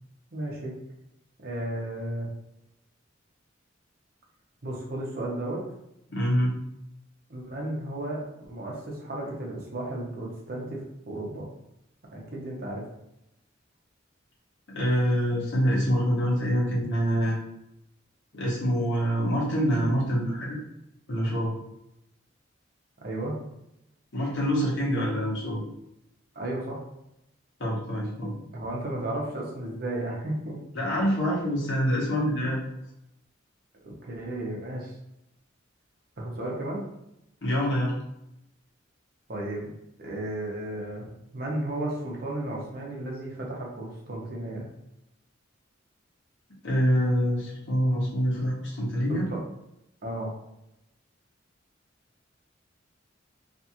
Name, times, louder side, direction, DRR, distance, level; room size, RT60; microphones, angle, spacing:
voice 1, 0.3-0.7 1.4-2.3 4.6-5.6 7.3-11.5 12.1-12.8 23.0-23.4 26.3-26.8 28.5-30.6 31.0-31.2 33.8-35.0 36.2-36.9 39.3-39.7 40.0-44.7 49.1-49.4 50.0-50.3, right 1 dB, 50° right, -2 dB, 0.7 m, -34 dB
voice 2, 6.1-6.5 14.7-17.4 18.3-20.6 21.1-21.5 24.1-25.6 27.6-28.3 30.7-32.7 37.4-38.0 46.6-49.3, equal, 60° left, -5 dB, 0.9 m, -25 dB
2.6 x 2.4 x 2.8 m, 0.83 s
head